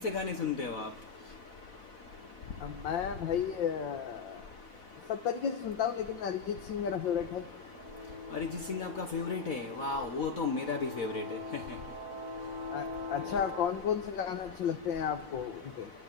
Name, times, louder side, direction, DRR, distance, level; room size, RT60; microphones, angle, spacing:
voice 1, 0.1-0.9 8.3-11.2, left 4 dB, 50° left, 1.7 m, -34 dB
voice 2, 2.6-4.5 5.1-7.5 12.7-15.9, left 8 dB, 75° left, 1.9 m, -33 dB
sound 1, 6.3-13.7, left 2 dB, 45° right, 6.4 m, -43 dB
28.5 x 23.5 x 7.6 m
omnidirectional pair, 2.0 m